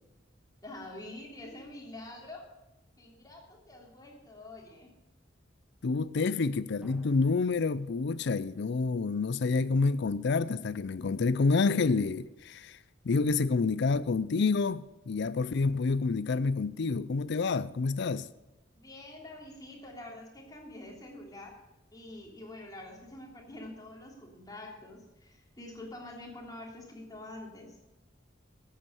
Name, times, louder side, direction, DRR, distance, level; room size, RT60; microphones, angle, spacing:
voice 1, 0.6-2.5 3.0-4.9 18.7-21.6 21.9-27.8, left 1 dB, 20° left, 3.3 m, -46 dB
voice 2, 5.8-12.8 13.0-18.3, left 4 dB, 60° left, 0.5 m, -28 dB
Drum, 6.8-9.5, right 1 dB, 5° right, 1.7 m, -56 dB
14.0 x 8.5 x 7.0 m
head